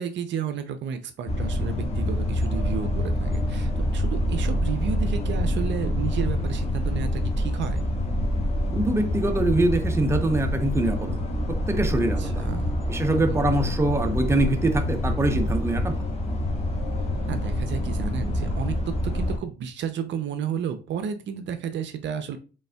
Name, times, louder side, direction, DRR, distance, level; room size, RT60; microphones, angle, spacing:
voice 1, 0.0-7.8 12.2-12.8 13.1-13.4 17.3-22.4, right 7 dB, 65° right, 0.5 m, -32 dB
sound 1, 1.3-19.4, left 1 dB, 30° left, 1.3 m, -26 dB
voice 2, 8.7-11.2 11.5-12.4 12.9-16.0, right 2 dB, 15° right, 0.7 m, -24 dB
5.3 x 3.5 x 2.2 m
cardioid pair, 90°, 20 cm